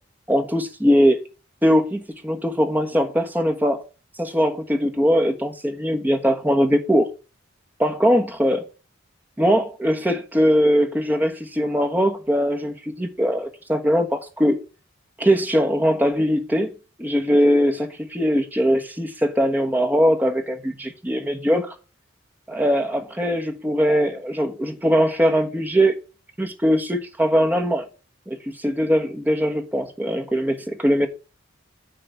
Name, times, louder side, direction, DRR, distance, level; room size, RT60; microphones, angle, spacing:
voice 1, 0.3-1.2 1.6-3.8 4.2-7.1 7.8-8.6 9.4-14.6 15.2-16.7 17.0-21.7 22.5-25.9 26.4-27.8 28.3-31.1, equal, 10° right, 1.3 m, -21 dB
10.0 x 3.8 x 6.8 m
head